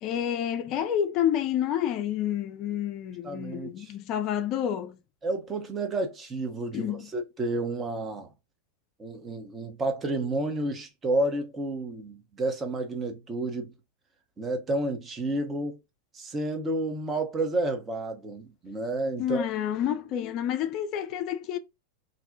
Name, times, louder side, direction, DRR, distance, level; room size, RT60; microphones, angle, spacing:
voice 1, 0.0-5.0 6.7-7.1 19.2-21.6, left 10 dB, 40° left, 0.3 m, -29 dB
voice 2, 3.2-3.9 5.2-8.3 9.0-13.7 14.4-15.8 16.1-19.5, right 2 dB, 20° right, 0.6 m, -30 dB
2.5 x 2.1 x 2.4 m
figure-of-eight pair, 90°, 0 cm